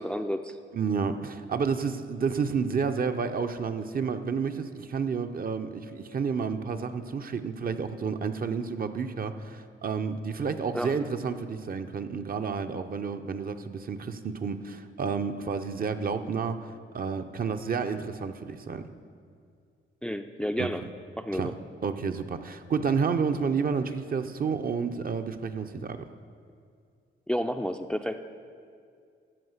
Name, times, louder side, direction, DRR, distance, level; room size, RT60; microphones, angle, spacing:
voice 1, 0.0-0.6 10.7-10.9 20.0-20.8 21.2-21.6 27.3-28.2, equal, 5° left, 7 dB, 0.4 m, -31 dB
voice 2, 0.7-18.9 20.6-20.7 21.3-21.5 21.8-26.0, right 5 dB, 45° right, 8 dB, 0.6 m, -30 dB
13.5 x 4.9 x 7.9 m, 2.3 s
cardioid pair, 100°, 21 cm